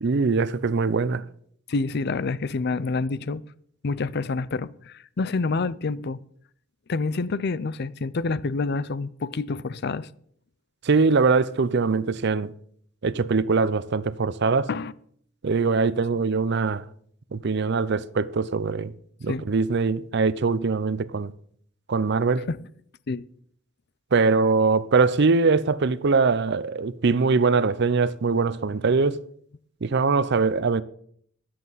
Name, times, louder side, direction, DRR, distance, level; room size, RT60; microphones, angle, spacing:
voice 1, 0.0-1.2 10.8-12.5 13.0-14.7 15.4-16.8 17.3-18.9 19.2-21.3 21.9-22.5 24.1-29.2 29.8-30.8, right 4 dB, 60° right, 0.6 m, -22 dB
voice 2, 1.7-3.4 3.8-6.2 6.9-10.1 14.7-14.9 19.3-19.5 22.5-22.6 23.1-23.2, left 3 dB, 55° left, 0.5 m, -27 dB
23.0 x 7.8 x 4.0 m
head